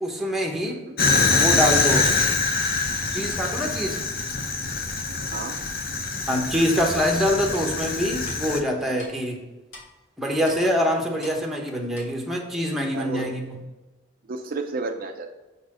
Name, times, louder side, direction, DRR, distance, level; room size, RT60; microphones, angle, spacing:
voice 1, 0.0-0.8 1.3-2.3 3.1-4.0 6.3-9.4 10.2-13.6, equal, ahead, 1 dB, 1.0 m, -25 dB
voice 2, 0.6-1.0 5.3-5.6 12.9-13.3 14.3-15.3, right 3 dB, 50° right, 4 dB, 0.5 m, -32 dB
Fire, 1.0-8.6, left 4 dB, 50° left, 0.7 m, -24 dB
Clock, 6.8-7.0 7.5-7.6 8.3-8.4 9.0-9.1 9.7-9.9 10.5-10.6 11.2-11.4 11.9-12.1, left 2 dB, 80° left, 1.8 m, -42 dB
6.3 x 4.1 x 4.9 m, 1.2 s
head